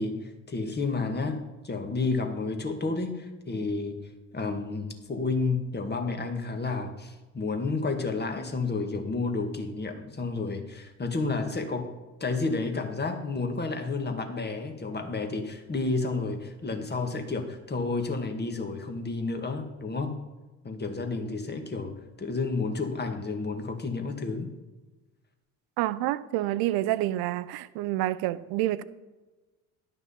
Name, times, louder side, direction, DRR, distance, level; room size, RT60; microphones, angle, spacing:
voice 1, 0.0-11.9 12.2-20.2 20.6-24.5, left 3 dB, 25° left, 1.8 m, -31 dB
voice 2, 25.8-28.8, right 15 dB, 55° right, 0.7 m, -28 dB
11.5 x 6.0 x 5.6 m
figure-of-eight pair, 55°, 43 cm